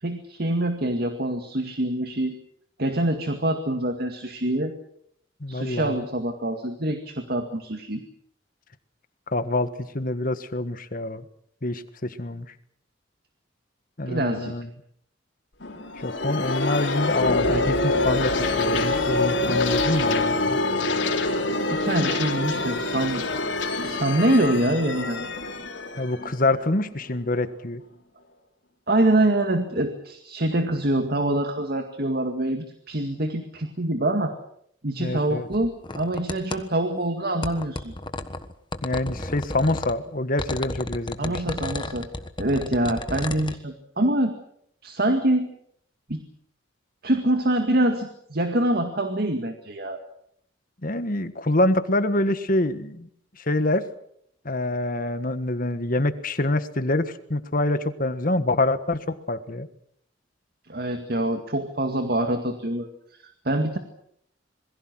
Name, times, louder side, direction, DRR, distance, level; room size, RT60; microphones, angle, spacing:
voice 1, 0.0-2.3 2.8-4.7 5.5-8.0 14.1-14.5 21.7-23.3 23.8-25.3 28.9-34.3 34.8-37.9 41.2-42.1 42.4-44.3 44.8-45.5 46.1-46.2 47.0-50.0 60.7-63.8, right 1 dB, 55° right, 6 dB, 2.1 m, -25 dB
voice 2, 5.4-6.0 9.3-11.2 11.6-12.5 14.0-14.7 16.0-20.6 25.9-27.8 35.0-35.5 38.8-41.4 50.8-53.1 53.4-53.9 54.4-59.7, left 2 dB, 45° left, 11 dB, 1.5 m, -26 dB
sound 1, 15.6-27.1, left 2 dB, 75° left, 3.8 m, -25 dB
sound 2, 35.5-36.6 37.4-39.9 40.4-43.5, left 2 dB, 25° left, 1.3 m, -33 dB
27.0 x 22.0 x 6.2 m, 0.69 s
head